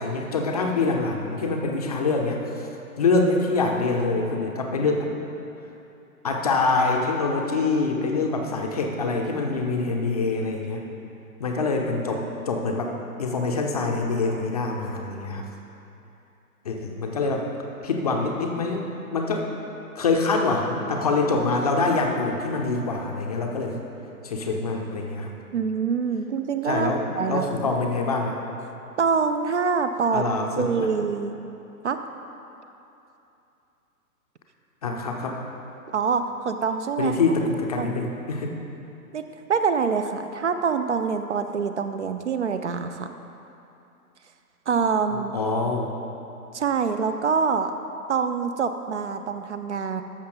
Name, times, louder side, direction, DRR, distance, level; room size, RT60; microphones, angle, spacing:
voice 1, 0.0-2.7 3.0-5.1 6.2-10.8 11.4-12.9 13.2-15.5 16.6-17.5 17.8-19.5 20.0-23.8 24.2-25.3 26.6-27.0 27.3-28.4 30.1-30.9 34.8-35.4 37.0-38.5 45.1-45.9, left 3 dB, 25° left, 1 dB, 0.5 m, -25 dB
voice 2, 25.5-27.6 29.0-30.2 30.6-31.3 31.8-32.0 35.9-37.1 37.8-38.0 39.1-39.2 39.5-43.1 44.7-45.3 46.5-47.7 48.1-50.0, right 5 dB, 50° right, 8 dB, 0.5 m, -25 dB
13.5 x 5.8 x 3.9 m, 2.8 s
figure-of-eight pair, 125°, 45 cm